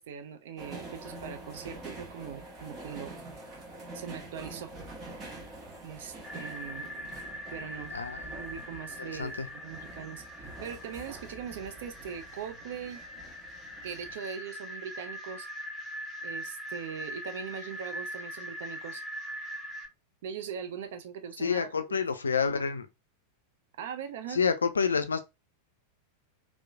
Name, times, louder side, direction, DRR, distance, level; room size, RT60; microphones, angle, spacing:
voice 1, 0.0-3.2 3.9-4.7 5.8-7.2 7.5-7.9 8.2-13.0 13.8-15.5 16.2-19.0 20.2-22.0 23.8-24.4, right 7 dB, 55° right, 0.5 m, -41 dB
sound 1, 0.6-14.2, right 2 dB, 25° right, 1.1 m, -46 dB
sound 2, 6.2-19.9, equal, ahead, 0.7 m, -42 dB
voice 2, 7.9-8.2 9.2-9.5 21.4-22.9 24.3-25.2, left 5 dB, 75° left, 0.3 m, -28 dB
2.9 x 2.1 x 2.3 m
figure-of-eight pair, 90°, 0 cm